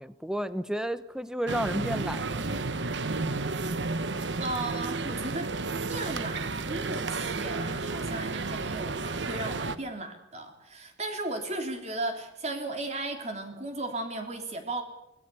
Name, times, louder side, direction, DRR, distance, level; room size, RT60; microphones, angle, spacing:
voice 1, 0.0-2.5, right 1 dB, 5° right, 13 dB, 0.9 m, -32 dB
sound 1, 1.5-9.8, right 3 dB, 80° right, 1.1 m, -32 dB
voice 2, 3.9-5.5 5.9-14.8, right 2 dB, 35° right, 5 dB, 3.4 m, -36 dB
24.5 x 18.5 x 7.0 m, 0.87 s
head